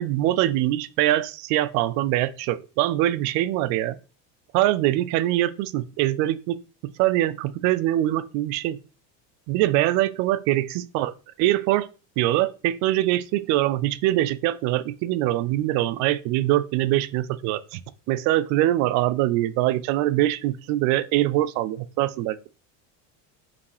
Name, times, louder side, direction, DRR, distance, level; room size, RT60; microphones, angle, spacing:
voice 1, 0.0-4.0 4.5-6.6 7.0-8.8 9.5-11.1 11.4-11.9 12.2-17.8 18.1-22.4, right 15 dB, 45° right, 0.5 m, -23 dB
5.4 x 5.2 x 4.8 m
cardioid pair, 175°, 38 cm